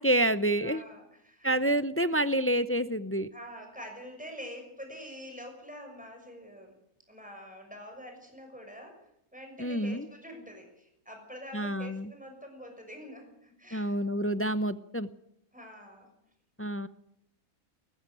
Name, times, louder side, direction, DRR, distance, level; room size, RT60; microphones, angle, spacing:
voice 1, 0.0-0.8 1.4-3.3 9.6-10.1 11.5-12.1 13.7-15.1 16.6-16.9, right 1 dB, 20° left, 13 dB, 0.3 m, -28 dB
voice 2, 0.6-1.5 3.3-6.7 7.1-9.0 9.3-14.0 15.5-16.1, equal, 5° right, 3 dB, 6.2 m, -46 dB
19.5 x 14.5 x 9.3 m, 0.76 s
omnidirectional pair, 1.5 m